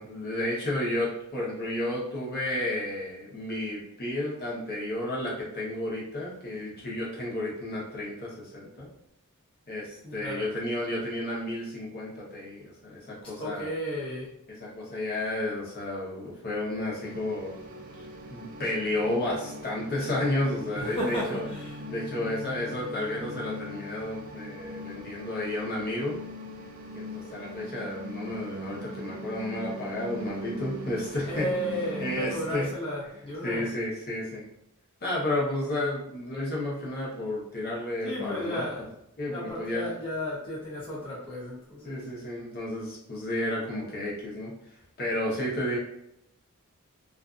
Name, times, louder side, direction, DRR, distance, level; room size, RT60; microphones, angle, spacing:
voice 1, 0.0-8.9 9.7-13.7 14.6-17.6 18.3-21.5 21.9-26.2 26.9-31.5 32.0-32.7 33.4-34.4 35.0-38.6 39.2-39.9 41.8-44.5 45.0-45.8, left 1 dB, 45° left, -4 dB, 0.9 m, -32 dB
voice 2, 10.0-10.5 13.4-14.3 20.7-21.8 31.3-33.7 38.0-38.9 39.3-42.1, left 1 dB, 25° left, -8 dB, 0.6 m, -34 dB
sound 1, 17.0-32.5, right 1 dB, 40° right, 0.4 m, -41 dB
2.6 x 2.4 x 2.4 m, 0.77 s
head